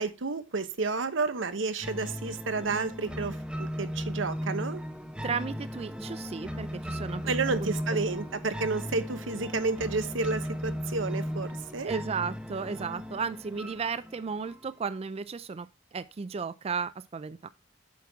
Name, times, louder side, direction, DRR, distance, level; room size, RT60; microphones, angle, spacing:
voice 1, 0.0-4.8 7.3-11.9, right 3 dB, 85° right, 1.0 m, -31 dB
sound 1, 1.8-14.8, equal, 5° right, 0.8 m, -36 dB
voice 2, 5.2-7.3 7.6-7.7 11.8-15.7 15.9-17.5, right 5 dB, 30° right, 0.4 m, -34 dB
8.4 x 6.0 x 3.5 m
head